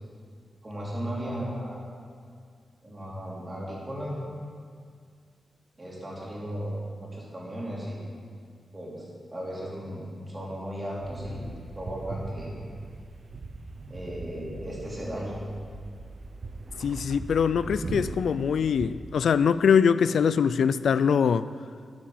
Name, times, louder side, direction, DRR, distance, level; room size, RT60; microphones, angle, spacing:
voice 1, 0.6-1.8 2.8-4.2 5.8-6.8 7.1-8.1 8.7-11.5 11.8-12.5 13.9-15.4, equal, 25° right, -5 dB, 4.1 m, -35 dB
sound 1, 11.0-18.9, right 2 dB, 50° right, 0.8 m, -39 dB
voice 2, 16.8-21.5, left 7 dB, 80° left, 14 dB, 0.3 m, -23 dB
12.0 x 9.4 x 7.4 m, 2.1 s
wide cardioid pair, 105°, 0 cm